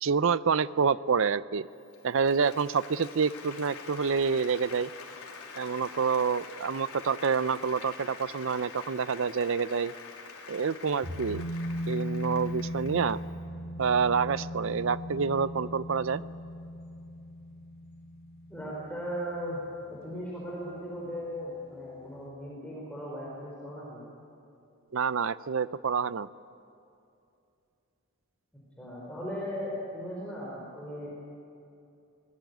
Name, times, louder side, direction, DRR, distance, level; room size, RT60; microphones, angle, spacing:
voice 1, 0.0-1.7 2.0-4.9 5.6-9.9 10.5-11.4 11.9-13.2 13.8-16.2 24.9-26.3, right 5 dB, 60° right, 17 dB, 0.5 m, -27 dB
Applause, 1.8-13.3, left 4 dB, 85° left, 3.4 m, -46 dB
sound 1, 11.0-20.1 20.4-20.5, equal, 40° right, 2.9 m, -38 dB
voice 2, 18.5-19.6 19.8-24.0 28.8-31.1, equal, 5° left, -5 dB, 4.1 m, -37 dB
25.5 x 19.0 x 9.3 m, 2.7 s
head